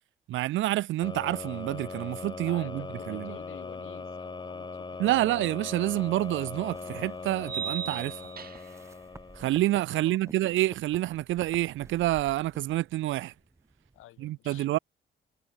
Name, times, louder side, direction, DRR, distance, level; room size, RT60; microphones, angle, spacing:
voice 1, 0.3-3.3 5.0-8.2 9.4-13.3 14.2-14.8, right 15 dB, 70° right, 0.6 m, -28 dB
sound 1, 1.0-9.9, left 4 dB, 20° left, 0.9 m, -40 dB
voice 2, 2.4-5.1 9.9-10.5 13.9-14.7, left 15 dB, 80° left, 6.8 m, -50 dB
sound 2, 5.8-14.0, right 2 dB, 15° right, 2.5 m, -53 dB
sound 3, 5.8-5.9 7.4-8.9, right 8 dB, 45° right, 1.1 m, -37 dB
supercardioid pair, 65°, 21 cm